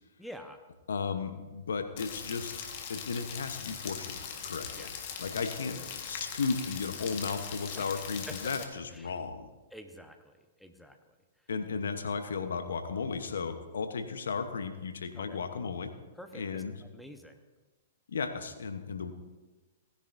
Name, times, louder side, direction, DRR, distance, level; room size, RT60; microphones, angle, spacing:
voice 1, 0.2-0.6 4.7-4.9 5.7-5.9 7.8-7.9 8.9-9.1 9.7-10.3 10.6-11.0 15.3-15.4 16.2-16.6 16.9-17.4, equal, ahead, 5 dB, 1.1 m, -48 dB
voice 2, 0.9-2.5 2.9-4.9 5.2-5.7 6.0-9.5 11.5-15.9 16.3-16.8 18.1-19.1, left 5 dB, 75° left, 8 dB, 1.0 m, -35 dB
Rain, 2.0-8.6, left 7 dB, 50° left, 1.5 m, -41 dB
18.5 x 10.0 x 2.7 m, 1.2 s
hypercardioid pair, 115°, 0 cm